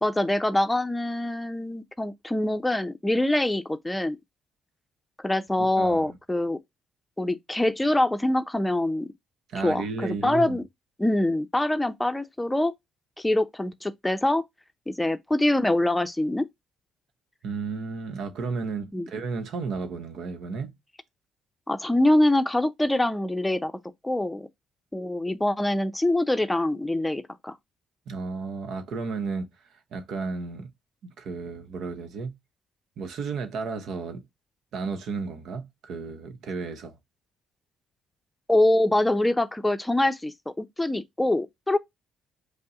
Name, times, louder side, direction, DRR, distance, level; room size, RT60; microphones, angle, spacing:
voice 1, 0.0-4.2 5.2-6.6 7.2-9.1 9.6-10.6 11.0-12.7 13.2-14.4 14.9-16.5 18.9-19.1 21.7-23.7 24.0-24.5 24.9-27.5 38.5-41.8, left 1 dB, 10° left, 0.6 m, -24 dB
voice 2, 5.6-6.2 9.5-10.6 17.4-20.8 28.1-29.5 29.9-30.7 31.0-32.4 33.0-34.2 34.7-37.0, right 4 dB, 70° right, 0.9 m, -33 dB
5.2 x 2.1 x 3.8 m
supercardioid pair, 70°, 0 cm